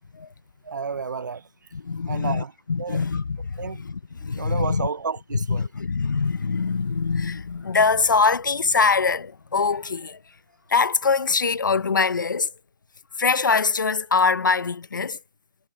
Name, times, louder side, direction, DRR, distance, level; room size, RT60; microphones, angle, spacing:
voice 1, 0.6-1.5 2.1-2.5 2.8-3.0 3.6-3.8 4.4-5.7, right 5 dB, 75° right, 0.6 m, -31 dB
voice 2, 1.7-4.9 5.5-10.2 10.7-12.5 13.2-15.2, left 4 dB, 85° left, 0.9 m, -23 dB
hypercardioid pair, 175°, 10 cm